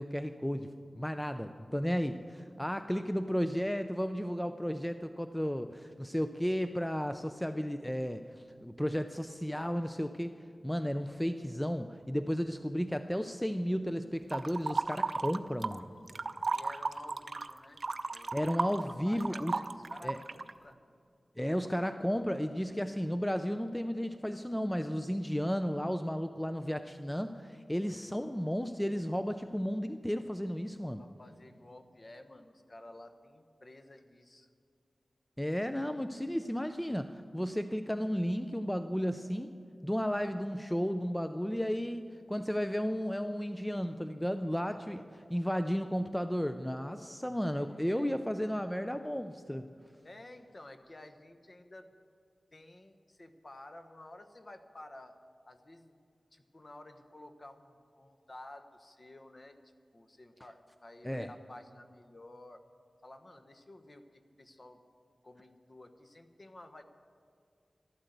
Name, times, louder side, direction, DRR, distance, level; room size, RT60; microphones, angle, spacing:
voice 1, 0.0-10.4 10.6-15.9 18.3-19.6 20.0-20.2 21.4-31.0 35.4-39.6 39.8-45.0 45.3-49.7 61.0-61.3, equal, 5° left, 9 dB, 0.5 m, -33 dB
sound 1, 14.3-15.8 16.1-20.5, right 3 dB, 55° right, 0.5 m, -34 dB
voice 2, 16.5-17.8 18.1-18.3 18.8-19.6 19.9-20.8 31.0-34.5 44.6-45.0 47.5-48.6 50.0-51.9 52.5-55.1 55.5-56.0 56.3-59.6 59.9-62.6 63.0-64.8 65.2-66.8, left 1 dB, 40° left, 7 dB, 1.1 m, -53 dB
13.0 x 12.5 x 8.0 m, 2.3 s
wide cardioid pair, 85°, 0 cm